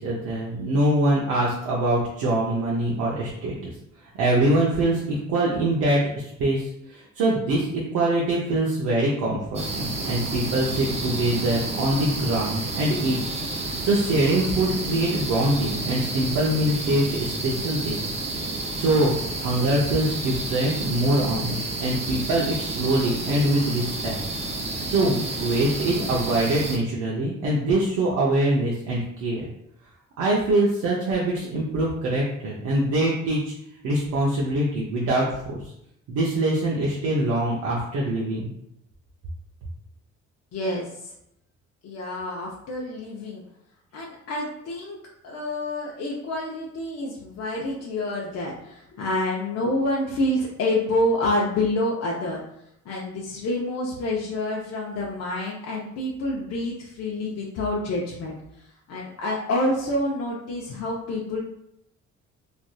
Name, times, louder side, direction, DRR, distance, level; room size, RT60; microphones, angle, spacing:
voice 1, 0.0-3.7 4.2-13.2 13.8-18.1 18.8-19.1 19.4-24.2 24.9-29.5 30.2-33.5 33.8-35.6 36.1-38.5, right 1 dB, 85° right, -4 dB, 0.6 m, -24 dB
sound 1, 9.5-26.8, right 2 dB, 20° right, 0.5 m, -30 dB
voice 2, 40.5-41.1 41.8-43.4 43.9-45.0 45.2-52.4 52.9-58.4 58.9-61.4, left 1 dB, 60° left, -3 dB, 0.6 m, -27 dB
3.2 x 2.6 x 2.2 m, 0.77 s
cardioid pair, 90°, 30 cm